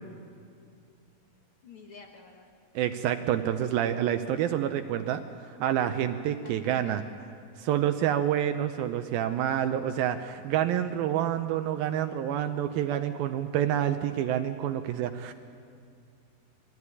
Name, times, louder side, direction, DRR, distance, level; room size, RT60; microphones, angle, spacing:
voice 1, 1.6-2.5 6.4-7.2, left 4 dB, 65° left, 2 dB, 1.3 m, -50 dB
voice 2, 2.8-5.2 5.6-7.0 7.6-15.3, right 10 dB, 80° right, 7 dB, 2.4 m, -28 dB
21.5 x 15.0 x 9.6 m, 2.3 s
omnidirectional pair, 4.4 m